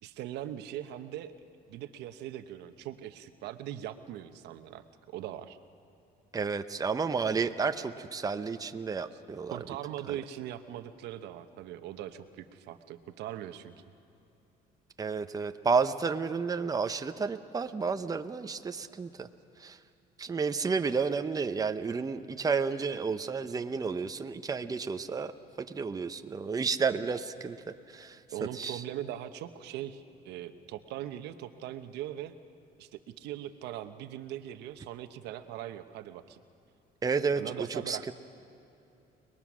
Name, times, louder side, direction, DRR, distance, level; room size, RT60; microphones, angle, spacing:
voice 1, 0.0-1.3 1.7-4.8 5.1-5.6 9.5-13.7 28.3-32.3 32.8-36.4 37.4-38.1, right 12 dB, 85° right, 9 dB, 1.0 m, -40 dB
voice 2, 6.3-9.6 10.1-10.2 15.0-19.3 19.6-19.8 20.2-25.3 25.6-27.6 27.9-28.2 28.5-28.8 37.0-37.4 37.7-38.1, right 5 dB, 20° right, 8 dB, 0.8 m, -31 dB
30.0 x 20.5 x 6.2 m, 2.8 s
cardioid pair, 110°, 17 cm